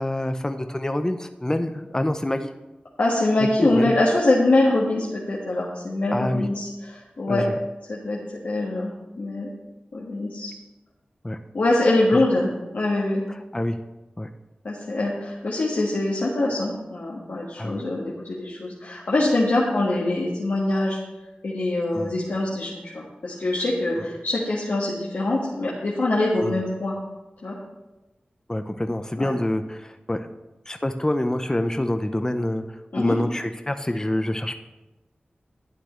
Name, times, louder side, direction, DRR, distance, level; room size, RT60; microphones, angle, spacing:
voice 1, 0.0-2.5 3.6-3.9 6.1-6.5 7.3-7.6 11.2-11.4 12.1-12.2 13.5-13.8 14.2-14.3 17.6-17.8 21.9-22.1 23.9-24.0 26.4-26.5 28.5-30.3 30.7-32.6 32.9-34.6, left 1 dB, 20° left, 8 dB, 0.6 m, -26 dB
voice 2, 3.0-7.5 7.9-8.2 8.4-9.5 9.9-10.5 11.5-13.2 14.6-21.0 21.4-26.9 27.4-27.5 29.2-29.3 32.9-33.2, left 2 dB, 85° left, -6 dB, 1.6 m, -24 dB
12.0 x 8.9 x 3.1 m, 1.0 s
wide cardioid pair, 60°, 3 cm